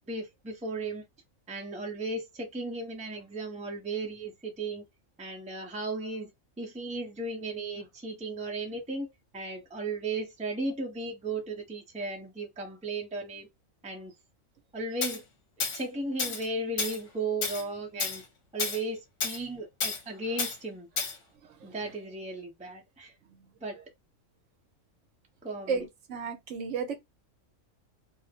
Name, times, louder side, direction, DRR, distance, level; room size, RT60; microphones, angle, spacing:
voice 1, 0.1-1.0 1.5-4.9 5.2-6.3 6.6-13.5 13.8-14.1 14.7-15.2 15.6-18.2 18.5-20.9 21.6-23.1 23.6-23.8 25.4-25.8, right 2 dB, 10° right, 0.5 m, -35 dB
Tools, 15.0-15.2 15.6-15.8 16.2-16.5 16.8-17.0 17.4-17.6 18.0-18.2 18.6-18.8 19.2-19.4 19.8-20.0 20.4-20.6 21.0-21.2, left 5 dB, 70° left, 1.1 m, -31 dB
voice 2, 25.7-26.9, right 5 dB, 70° right, 1.0 m, -32 dB
2.5 x 2.0 x 2.7 m
omnidirectional pair, 1.4 m